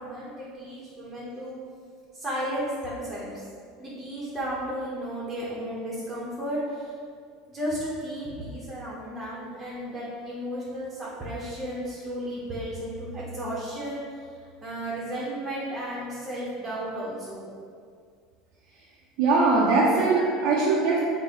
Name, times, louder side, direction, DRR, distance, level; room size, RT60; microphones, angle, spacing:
voice 1, 0.0-1.5 2.1-3.4 3.8-6.9 7.5-14.3 14.6-17.5, equal, 20° right, -7 dB, 0.8 m, -34 dB
voice 2, 19.2-21.0, right 3 dB, 65° right, -6 dB, 0.6 m, -21 dB
4.1 x 2.1 x 3.6 m, 2.1 s
supercardioid pair, 105°, 0 cm